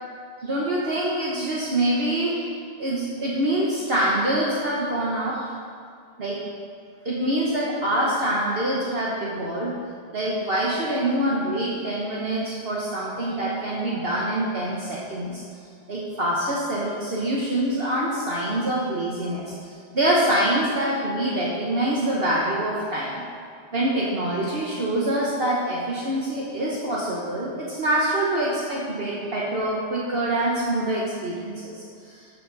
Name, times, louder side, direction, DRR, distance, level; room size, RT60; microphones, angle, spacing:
voice 1, 0.4-2.5 2.8-5.5 6.2-6.4 7.0-9.7 10.1-15.4 15.9-23.2 23.7-32.2, right 1 dB, 60° right, -5 dB, 1.5 m, -25 dB
14.0 x 7.7 x 4.1 m, 2.3 s
omnidirectional pair, 1.2 m